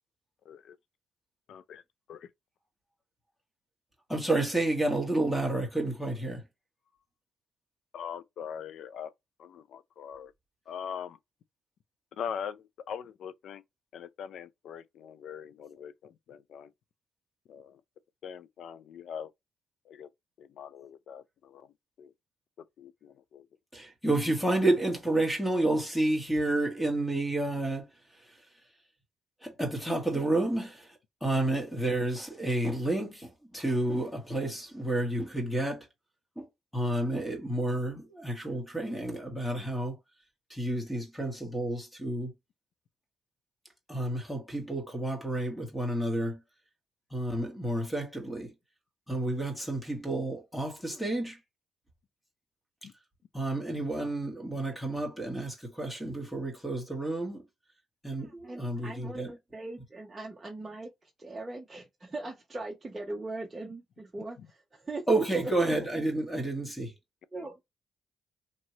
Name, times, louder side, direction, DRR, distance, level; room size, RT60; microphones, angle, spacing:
voice 1, 1.5-1.8 2.1-2.2 7.9-9.1 9.4-10.3 10.7-11.2 12.2-13.6 13.9-15.9 16.3-16.7 17.5-17.7 18.2-19.3 19.9-20.1 20.4-21.2 21.5-21.6 22.0-22.1 22.8-23.4, left 8 dB, 70° left, 0.4 m, -41 dB
voice 2, 4.1-6.4 23.7-27.9 28.2-28.4 29.4-35.9 36.4-36.5 36.7-40.0 40.5-42.3 43.9-46.4 47.1-48.5 49.1-51.4 53.3-57.4 58.0-59.4 65.1-66.9, right 1 dB, 5° left, 1.3 m, -30 dB
voice 3, 58.2-65.7 67.3-67.6, right 2 dB, 25° right, 0.8 m, -40 dB
3.0 x 2.7 x 2.8 m
cardioid pair, 90°, 0 cm